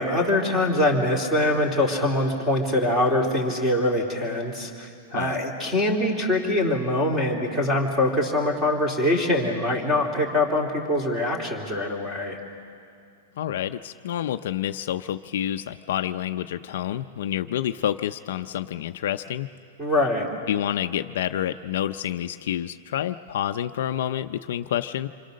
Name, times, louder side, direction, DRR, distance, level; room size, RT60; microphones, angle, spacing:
voice 1, 0.0-12.4 19.8-20.3, left 1 dB, 10° right, 0 dB, 3.0 m, -23 dB
voice 2, 13.4-19.5 20.5-25.1, left 11 dB, 60° left, 9 dB, 0.6 m, -28 dB
27.0 x 25.0 x 6.5 m, 2.4 s
supercardioid pair, 170°, 0 cm